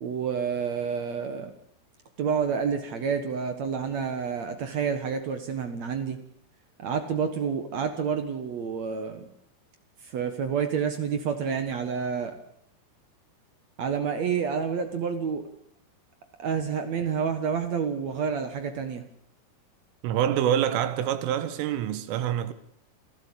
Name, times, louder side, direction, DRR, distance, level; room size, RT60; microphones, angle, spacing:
voice 1, 0.0-1.5 2.2-6.2 6.8-9.2 10.0-12.3 13.8-15.4 16.4-19.0, right 6 dB, 70° right, 1.6 m, -29 dB
voice 2, 20.0-22.5, right 10 dB, 90° right, 4.0 m, -26 dB
29.0 x 12.0 x 8.6 m
omnidirectional pair, 5.6 m